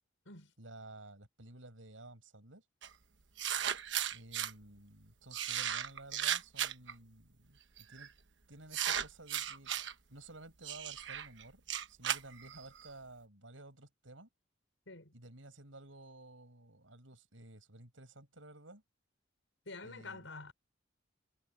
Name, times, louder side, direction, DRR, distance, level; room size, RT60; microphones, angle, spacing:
voice 1, 0.6-2.6 4.1-8.1 8.5-9.7 10.1-14.3 15.1-18.8 19.8-20.3, right 2 dB, 90° right, 7.7 m, -54 dB
sound 1, 2.8-2.9 3.4-4.5 5.3-6.9 7.8-8.1 8.7-9.9 10.6-12.9, right 10 dB, 70° right, 1.2 m, -36 dB
voice 2, 19.7-20.5, left 3 dB, 85° left, 5.7 m, -47 dB
head